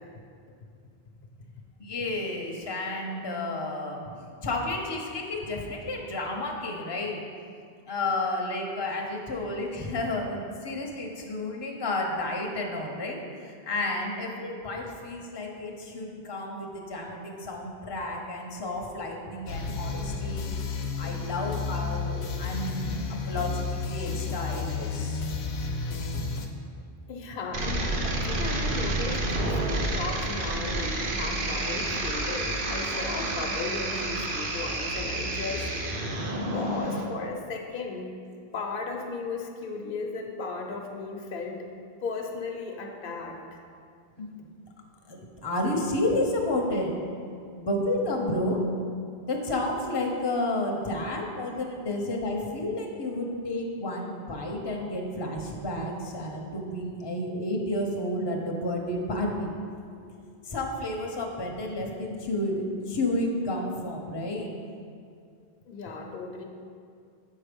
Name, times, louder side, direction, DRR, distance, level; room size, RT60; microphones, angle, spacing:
voice 1, 1.8-4.0 4.4-7.2 7.9-20.5 21.0-25.2 29.7-29.8 44.2-44.5 45.1-47.0 47.6-48.6 49.3-59.5 60.0-60.1 60.5-64.5, left 1 dB, 25° left, 0 dB, 0.8 m, -31 dB
sound 1, 19.5-26.5, left 4 dB, 90° left, 0.9 m, -32 dB
voice 2, 20.0-20.6 22.6-22.7 23.2-23.3 27.1-35.7 36.1-36.2 36.5-38.1 38.5-41.7 42.0-43.4 65.7-66.4, left 4 dB, 65° left, 1 dB, 0.9 m, -36 dB
sound 2, 27.5-37.0, right 2 dB, 60° right, 0.9 m, -29 dB
7.0 x 4.7 x 5.2 m, 2.3 s
omnidirectional pair, 1.0 m